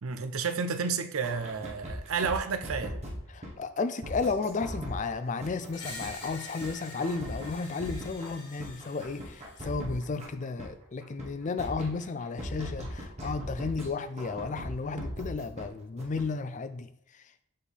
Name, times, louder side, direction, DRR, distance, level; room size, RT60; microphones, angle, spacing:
voice 1, 0.0-3.0, right 5 dB, 65° right, 0.5 m, -31 dB
sound 1, 1.2-3.5 4.0-5.0 5.4-6.3 6.6-6.7 7.0-8.3 8.6-10.7 11.0-11.3 11.6-13.9 14.2-15.6 16.0-16.2, equal, 30° right, 1.3 m, -39 dB
voice 2, 3.3-16.9, left 4 dB, 35° left, 0.4 m, -33 dB
Screech, 5.7-9.7, left 2 dB, 85° left, 1.4 m, -46 dB
7.3 x 4.3 x 3.4 m
head